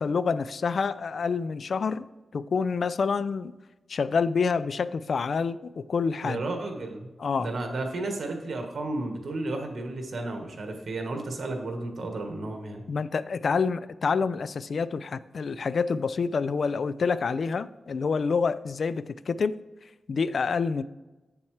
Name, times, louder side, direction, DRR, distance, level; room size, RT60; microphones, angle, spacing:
voice 1, 0.0-2.0 2.3-3.5 3.9-6.4 7.2-7.5 12.9-19.6 20.1-20.8, left 5 dB, 60° left, 14 dB, 0.3 m, -27 dB
voice 2, 6.2-7.1 7.4-12.8, right 2 dB, 70° right, 3 dB, 1.4 m, -33 dB
7.2 x 7.1 x 3.2 m, 1.1 s
wide cardioid pair, 110°, 0 cm